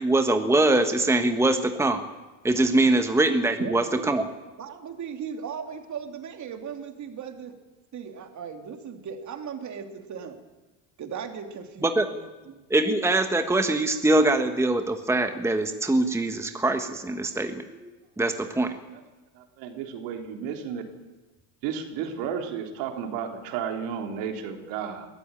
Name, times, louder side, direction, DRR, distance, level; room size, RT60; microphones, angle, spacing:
voice 1, 0.0-2.0 2.4-4.3 11.8-12.1 12.7-17.9 18.2-18.8, right 2 dB, 5° right, 6 dB, 1.5 m, -23 dB
voice 2, 3.6-4.2 4.6-7.5 7.9-10.4 11.0-12.6, right 7 dB, 40° right, 5 dB, 3.2 m, -37 dB
voice 3, 19.3-20.8 21.6-25.1, right 7 dB, 70° right, 4 dB, 3.6 m, -33 dB
21.5 x 14.5 x 9.0 m, 1.2 s
supercardioid pair, 100°, 45 cm